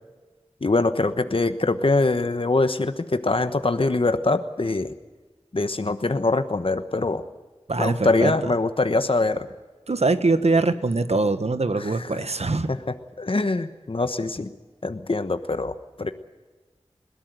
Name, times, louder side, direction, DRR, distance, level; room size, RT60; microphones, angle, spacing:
voice 1, 0.6-4.9 5.5-7.2 7.8-9.5 11.8-12.1 12.7-12.8 13.2-14.5 14.8-16.1, left 3 dB, 55° left, 9 dB, 1.1 m, -23 dB
voice 2, 7.7-8.5 9.9-12.7, right 3 dB, 75° right, 11 dB, 1.3 m, -23 dB
21.0 x 17.0 x 9.1 m, 1.3 s
wide cardioid pair, 55°, 11 cm